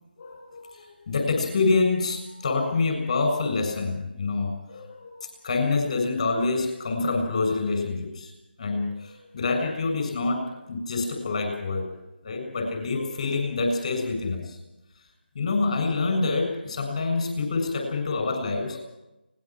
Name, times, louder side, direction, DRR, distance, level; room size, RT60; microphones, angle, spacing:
voice 1, 0.2-8.3 8.6-11.9 12.2-14.6 15.4-18.8, left 3 dB, 40° left, 5 dB, 7.0 m, -26 dB
24.5 x 20.0 x 6.1 m, 0.96 s
figure-of-eight pair, 160°, 6 cm